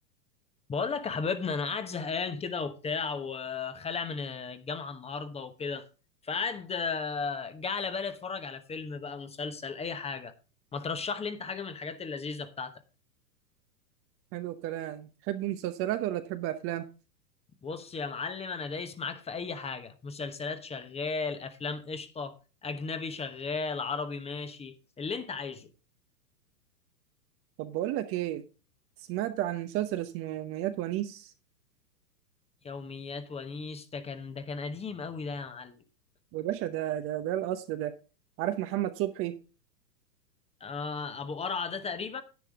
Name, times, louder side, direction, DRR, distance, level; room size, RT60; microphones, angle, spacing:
voice 1, 0.7-5.8 6.2-10.3 10.7-12.7 17.6-22.3 22.6-25.7 32.6-35.8 40.6-42.2, left 5 dB, 10° left, 1.0 m, -35 dB
voice 2, 14.3-16.9 27.6-28.4 29.1-31.3 36.3-38.0 38.4-39.4, right 13 dB, 25° right, 0.8 m, -32 dB
10.5 x 9.7 x 3.5 m
hypercardioid pair, 115°, 49 cm